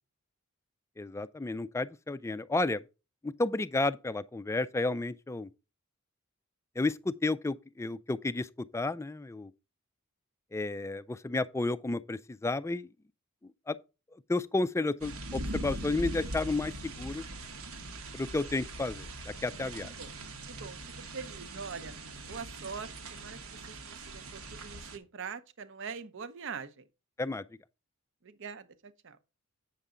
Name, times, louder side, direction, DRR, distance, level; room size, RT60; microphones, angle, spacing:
voice 1, 1.0-2.8 3.2-5.5 6.8-9.5 10.5-12.9 13.4-13.8 14.3-17.3 18.1-19.9 27.2-27.4, left 2 dB, 15° left, 0.3 m, -32 dB
sound 1, 15.0-25.0, right 1 dB, 75° right, 1.1 m, -41 dB
voice 2, 19.6-20.1 20.5-20.8 21.1-21.9 22.3-23.4 23.7-26.8 28.2-29.2, right 5 dB, 60° right, 0.7 m, -43 dB
8.1 x 6.8 x 3.7 m
head